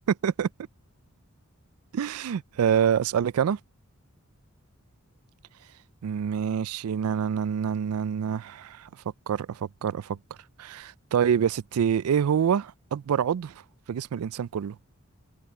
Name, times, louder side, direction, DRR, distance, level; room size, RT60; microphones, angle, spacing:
voice 1, 0.1-0.5 1.9-3.6 6.0-8.9 9.3-10.2 10.6-13.5 13.9-14.8, right 8 dB, 85° right, 0.4 m, -26 dB
head